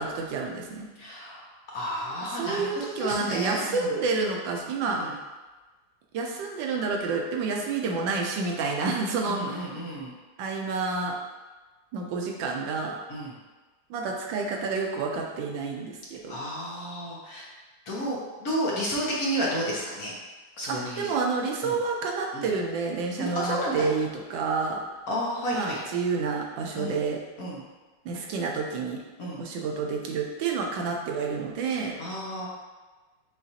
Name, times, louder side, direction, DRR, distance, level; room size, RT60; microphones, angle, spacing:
voice 1, 0.0-0.9 2.4-5.0 6.1-9.6 10.4-11.1 11.9-13.0 13.9-16.4 20.7-24.8 25.5-27.2 28.0-29.0 29.4-31.9, right 4 dB, 85° right, 0 dB, 1.4 m, -29 dB
voice 2, 1.0-4.0 4.9-5.1 9.3-10.1 13.1-13.3 16.3-17.4 17.9-20.2 20.6-21.1 21.6-21.8 22.3-22.5 23.2-23.9 25.1-25.8 26.7-27.0 27.4-27.6 29.2-29.4 32.0-32.5, equal, 60° left, -5 dB, 1.2 m, -31 dB
6.9 x 2.5 x 2.7 m, 1.2 s
omnidirectional pair, 2.0 m